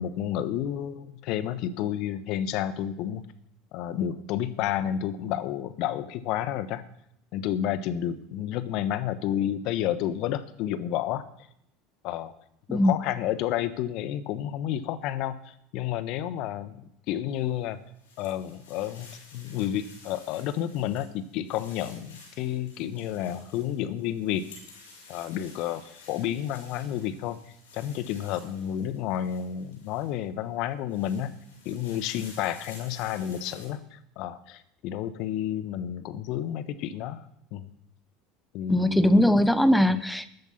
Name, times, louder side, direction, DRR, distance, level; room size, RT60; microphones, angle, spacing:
voice 1, 0.0-3.2 3.7-6.8 7.3-11.2 12.0-12.4 12.7-17.8 18.2-24.5 25.1-27.4 27.7-31.3 31.6-37.2 37.5-37.7 38.5-39.3 39.9-40.0, left 11 dB, 55° left, 14 dB, 1.1 m, -30 dB
sound 1, 17.4-30.2 30.7-33.7, left 3 dB, 70° left, 6.0 m, -52 dB
voice 2, 38.7-40.3, left 1 dB, 5° left, 15 dB, 0.8 m, -20 dB
13.5 x 12.0 x 5.8 m, 0.74 s
figure-of-eight pair, 70°, 0 cm